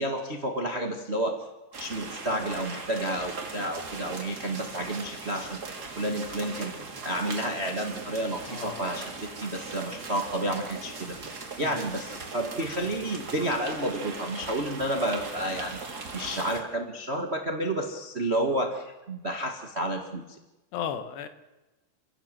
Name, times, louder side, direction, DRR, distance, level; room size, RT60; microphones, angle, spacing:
voice 1, 0.0-1.5 1.8-5.6 6.0-6.7 7.0-11.2 11.6-20.4, right 1 dB, 90° right, 4 dB, 0.5 m, -30 dB
sound 1, 1.7-16.6, right 3 dB, 30° right, 2.3 m, -39 dB
voice 2, 8.5-8.9 11.6-11.7 20.7-21.3, left 8 dB, 90° left, 9 dB, 3.6 m, -34 dB
28.0 x 16.5 x 7.6 m, 1.0 s
omnidirectional pair, 4.6 m